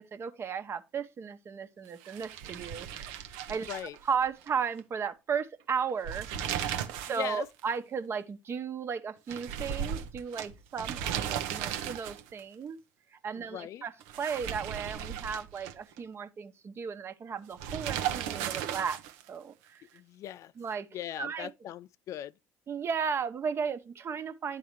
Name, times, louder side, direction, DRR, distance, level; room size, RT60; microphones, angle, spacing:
voice 1, 0.0-3.2 3.5-3.7 4.1-12.8 13.1-13.9 14.2-19.0 19.3-20.0 20.6-20.9 21.2-21.5 22.7-24.6, right 6 dB, 45° right, 1.0 m, -35 dB
sound 1, 2.0-4.5 4.8-4.9 5.9-7.3 7.6-7.7 9.3-12.4 14.0-16.0 17.6-19.3, right 9 dB, 80° right, 0.7 m, -36 dB
voice 2, 7.1-7.5 13.4-13.8 19.9-20.5 20.9-22.3, left 12 dB, 60° left, 0.3 m, -39 dB
11.0 x 3.9 x 3.0 m
hypercardioid pair, 65°, 6 cm